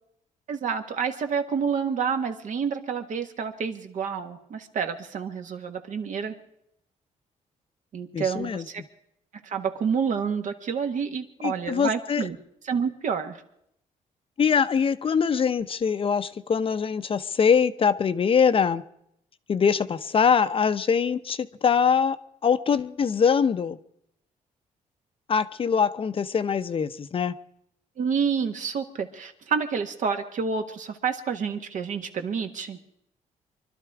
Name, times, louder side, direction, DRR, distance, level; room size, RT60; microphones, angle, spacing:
voice 1, 0.5-6.3 7.9-8.8 9.4-12.4 12.6-13.4 28.0-32.8, right 6 dB, 65° right, 6 dB, 1.6 m, -29 dB
voice 2, 8.1-8.6 11.4-12.3 14.4-18.8 19.5-22.2 22.4-23.8 25.3-27.3, left 6 dB, 40° left, 12 dB, 0.7 m, -23 dB
24.5 x 12.0 x 4.8 m, 0.75 s
cardioid pair, 110°, 14 cm